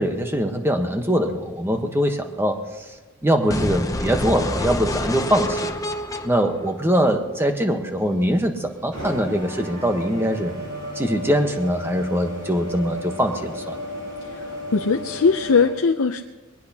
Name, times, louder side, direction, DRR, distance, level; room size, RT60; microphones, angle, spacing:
voice 1, 0.0-2.6 3.2-5.7 6.2-10.5 11.0-13.8, equal, 10° right, 5 dB, 1.2 m, -22 dB
sound 1, 3.5-7.5, left 1 dB, 15° left, 0.7 m, -28 dB
sound 2, 7.5-15.7, equal, 55° right, 6.5 m, -34 dB
voice 2, 14.2-16.2, left 5 dB, 75° left, 4 dB, 0.6 m, -20 dB
21.5 x 18.5 x 2.9 m, 1.2 s
head